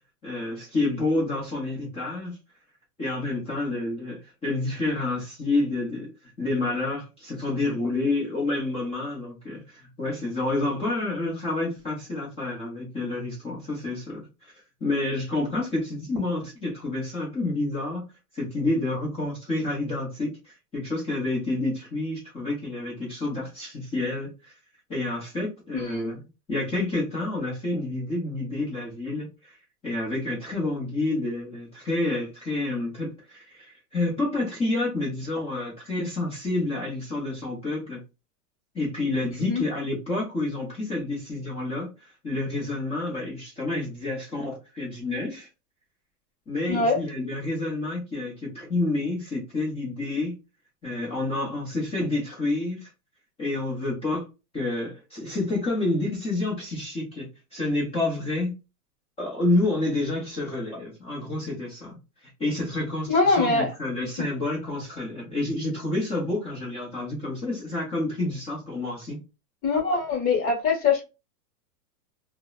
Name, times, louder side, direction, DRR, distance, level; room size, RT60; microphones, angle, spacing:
voice 1, 0.2-2.3 3.0-6.1 6.4-14.5 14.8-18.0 18.3-24.5 24.9-26.2 26.5-29.5 29.8-38.0 38.7-41.9 42.2-45.5 46.5-50.3 50.8-52.9 53.4-54.3 54.5-58.6 59.2-62.0 62.4-69.2, left 2 dB, 10° left, 0.6 m, -29 dB
voice 2, 25.7-26.1 39.4-39.6 46.7-47.0 63.1-63.7 64.2-64.3 69.6-71.0, left 4 dB, 35° left, 1.1 m, -23 dB
2.7 x 2.0 x 2.2 m
hypercardioid pair, 140°, 49 cm